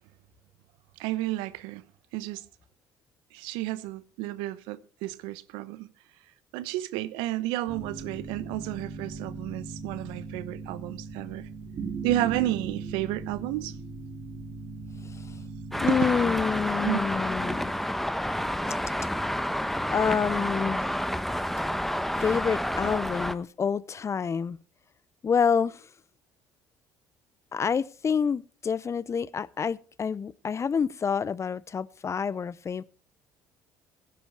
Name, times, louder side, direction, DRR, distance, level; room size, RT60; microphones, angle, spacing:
voice 1, 1.0-1.8 2.1-2.4 3.3-5.9 6.5-11.5 12.0-13.7 15.9-16.0 16.8-17.0, right 15 dB, 80° right, 0.9 m, -31 dB
sound 1, 7.7-16.2, right 4 dB, 55° right, 3.0 m, -38 dB
Traffic noise roadway noise, 15.7-23.3, equal, ahead, 1.0 m, -29 dB
voice 2, 15.8-17.7 19.9-21.0 22.2-24.6 25.2-25.9 27.5-32.8, left 6 dB, 35° left, 0.6 m, -28 dB
16.5 x 10.0 x 4.7 m
hypercardioid pair, 65°, 8 cm